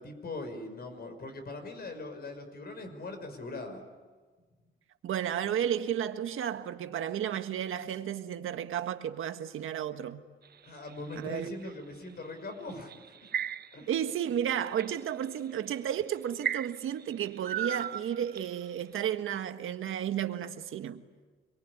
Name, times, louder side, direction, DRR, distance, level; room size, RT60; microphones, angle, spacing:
voice 1, 0.0-3.8 10.7-12.9 13.7-13.9, left 2 dB, 50° left, 6.0 m, -41 dB
voice 2, 5.0-10.2 11.2-11.5 13.9-21.0, right 9 dB, 75° right, 1.6 m, -33 dB
sound 1, 10.4-11.7 12.7-14.0 14.4-14.9 15.6-15.7 16.4-18.6, right 9 dB, 50° right, 0.8 m, -35 dB
26.5 x 22.5 x 9.9 m
cardioid pair, 105°, 21 cm